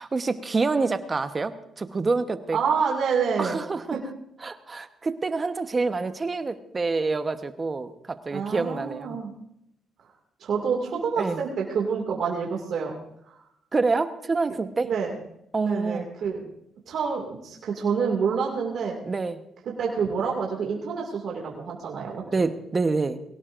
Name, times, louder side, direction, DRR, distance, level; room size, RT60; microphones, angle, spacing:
voice 1, 0.0-2.6 3.4-4.0 4.4-9.2 11.2-11.4 13.7-14.9 15.5-16.1 19.0-19.4 22.3-23.2, right 3 dB, 30° right, 9 dB, 1.1 m, -27 dB
voice 2, 2.5-3.6 3.9-4.0 8.3-9.3 10.4-12.9 13.2-13.4 14.8-15.1 15.6-16.4 16.9-18.9 19.7-22.2, right 6 dB, 65° right, -1 dB, 2.3 m, -27 dB
22.5 x 17.0 x 2.6 m, 0.77 s
cardioid pair, 90°, 0 cm